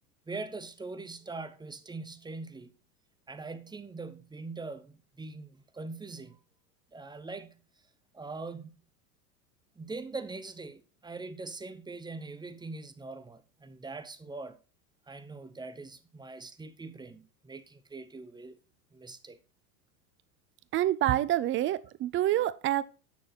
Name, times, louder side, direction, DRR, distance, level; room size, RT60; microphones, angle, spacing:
voice 1, 0.3-2.7 3.3-6.4 6.9-7.6 8.1-8.8 9.7-14.6 15.1-18.6 18.9-19.4, right 3 dB, 10° right, 0.8 m, -42 dB
voice 2, 20.7-22.8, right 13 dB, 25° right, 0.5 m, -27 dB
9.3 x 6.2 x 4.2 m
hypercardioid pair, 95°, 47 cm